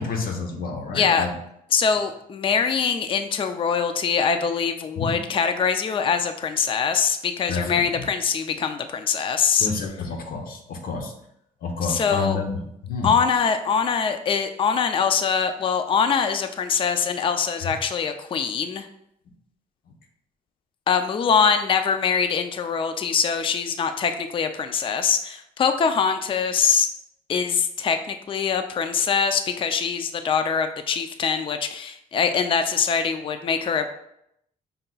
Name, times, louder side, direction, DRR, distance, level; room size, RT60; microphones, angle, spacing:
voice 1, 0.0-1.3 5.0-5.2 7.5-8.1 9.6-11.1 11.6-13.1, left 4 dB, 70° left, 3 dB, 0.8 m, -29 dB
voice 2, 0.9-1.3 1.7-9.7 11.8-12.4 13.0-18.9 20.9-26.9 27.3-33.9, left 6 dB, 35° left, 8 dB, 0.4 m, -23 dB
5.4 x 2.2 x 3.9 m, 0.77 s
cardioid pair, 110°, 15 cm